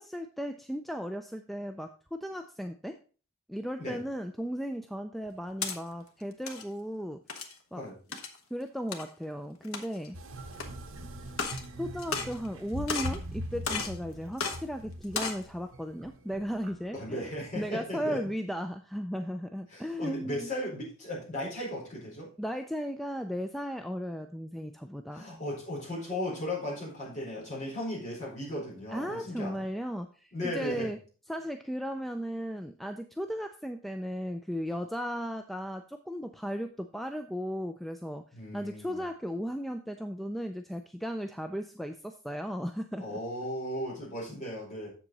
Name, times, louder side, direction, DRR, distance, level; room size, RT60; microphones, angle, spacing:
voice 1, 0.0-3.0 3.5-7.2 7.7-7.8 8.5-10.2 11.8-17.3 17.6-20.5 22.4-25.3 28.9-31.0 31.3-38.2 38.5-43.2, equal, ahead, 7 dB, 0.3 m, -36 dB
sound 1, 5.2-5.8 6.3-6.6 7.3-7.6 8.1-8.4 8.9-9.0 9.6-10.1 10.6-10.7 11.3-11.7 12.0-12.6 12.9-13.2 13.6-14.0 14.4-14.6 15.0-15.4, left 5 dB, 80° left, 1.3 m, -34 dB
sound 2, 10.1-17.6, equal, 70° right, 1.1 m, -42 dB
voice 2, 16.9-18.3 19.7-22.3 25.1-29.6 30.3-30.9 38.3-39.1 43.0-44.9, left 1 dB, 35° left, -4 dB, 4.3 m, -36 dB
7.5 x 7.4 x 4.0 m, 0.38 s
head